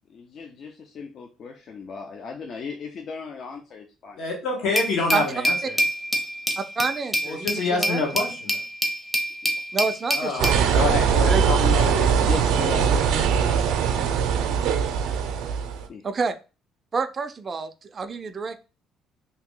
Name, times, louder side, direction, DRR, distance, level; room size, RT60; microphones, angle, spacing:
voice 1, 0.1-4.2 9.4-9.5 12.2-14.8 15.9-16.0, left 5 dB, 50° left, 4 dB, 0.5 m, -37 dB
voice 2, 4.2-5.8 7.2-8.6 10.1-12.3, left 3 dB, 70° left, 0 dB, 1.2 m, -27 dB
Glass, 4.8-10.6, equal, 5° left, 0.6 m, -26 dB
voice 3, 6.6-8.0 9.7-10.9 11.2-11.4 16.0-16.3 16.9-18.6, right 4 dB, 30° right, 7 dB, 0.3 m, -28 dB
sound 1, 10.4-15.8, right 7 dB, 90° right, 0.5 m, -21 dB
2.8 x 2.6 x 3.7 m, 0.32 s
cardioid pair, 120°, 0 cm